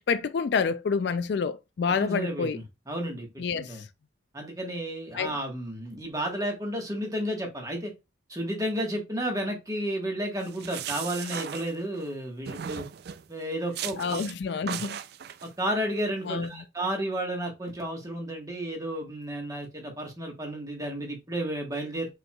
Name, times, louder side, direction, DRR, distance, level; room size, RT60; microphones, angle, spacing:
voice 1, 0.0-2.6 3.4-3.9 5.1-5.3 14.0-15.0 16.2-16.5, left 5 dB, 55° left, 0.3 m, -28 dB
voice 2, 1.9-3.8 4.3-7.9 8.3-12.9 13.3-14.0 14.7-14.8 15.6-22.2, right 1 dB, 15° right, 1.4 m, -32 dB
sound 1, 10.4-12.1 12.5-13.3 13.7-14.3 14.7-15.5, right 9 dB, 50° right, 0.3 m, -37 dB
5.3 x 4.4 x 2.3 m
head